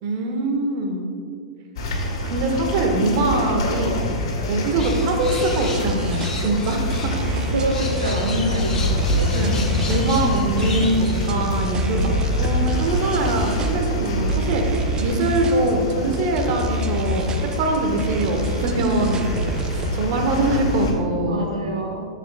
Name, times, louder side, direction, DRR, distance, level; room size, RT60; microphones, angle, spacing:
voice 1, 0.0-1.1 2.2-4.0 4.5-7.1 9.3-12.1 12.4-14.6 15.0-21.5, right 2 dB, 45° right, 3 dB, 1.4 m, -23 dB
sound 1, 1.8-20.9, left 1 dB, 55° left, 2.0 m, -25 dB
sound 2, 4.8-11.4, left 3 dB, 20° left, 1.2 m, -35 dB
sound 3, 5.3-20.1, equal, 25° right, 0.5 m, -29 dB
voice 2, 7.3-9.5 21.3-22.1, right 1 dB, 75° right, 0 dB, 0.9 m, -26 dB
13.0 x 7.4 x 2.3 m, 2.2 s
figure-of-eight pair, 100°, 3 cm